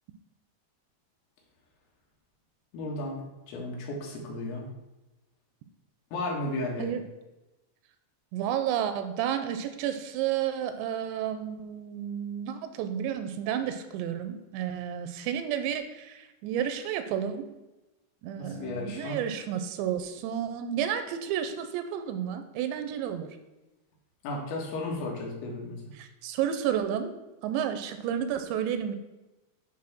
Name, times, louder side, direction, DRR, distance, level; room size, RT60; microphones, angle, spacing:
voice 1, 2.7-4.7 6.1-6.9 18.4-19.2 24.2-25.8, left 2 dB, 90° left, -1 dB, 4.0 m, -34 dB
voice 2, 8.3-17.5 18.2-23.3 26.0-27.1 27.4-29.0, right 9 dB, 85° right, 9 dB, 2.9 m, -31 dB
9.8 x 4.0 x 6.0 m, 1.0 s
omnidirectional pair, 5.1 m